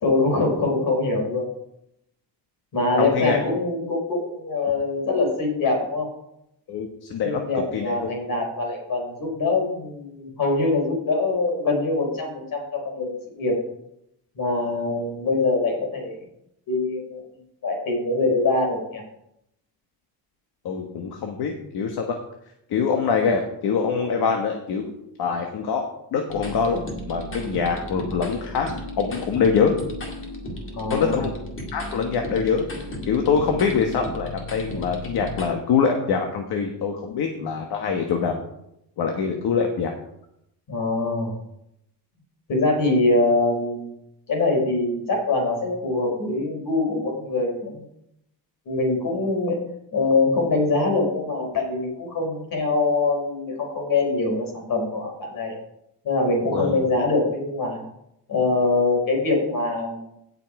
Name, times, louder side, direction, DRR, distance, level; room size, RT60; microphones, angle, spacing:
voice 1, 0.0-1.5 2.7-6.1 7.2-13.5 14.4-16.2 16.7-17.3 17.6-19.0 30.7-31.2 40.7-41.3 42.5-44.0 44.3-47.8 48.7-49.6 49.9-55.5 56.0-57.8 58.3-60.1, left 3 dB, 55° left, 1 dB, 3.8 m, -23 dB
voice 2, 3.0-3.4 4.6-4.7 6.7-7.9 20.6-22.1 22.7-24.9 25.2-29.7 30.9-31.3 31.7-32.6 33.1-38.4 39.0-39.9 56.5-56.8, left 6 dB, 70° left, 3 dB, 1.4 m, -24 dB
sound 1, 26.3-35.5, equal, 30° left, 2.3 m, -35 dB
17.0 x 5.8 x 4.8 m, 0.80 s
cardioid pair, 170°, 39 cm